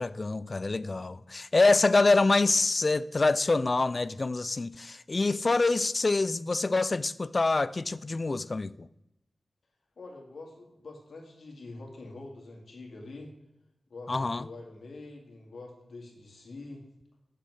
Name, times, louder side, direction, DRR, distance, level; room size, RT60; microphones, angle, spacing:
voice 1, 0.0-8.9 14.1-14.5, left 3 dB, 45° left, 0.3 m, -26 dB
voice 2, 10.0-13.3 13.9-16.8, left 2 dB, 80° left, 2.1 m, -45 dB
7.6 x 6.6 x 4.7 m
wide cardioid pair, 75°, 0 cm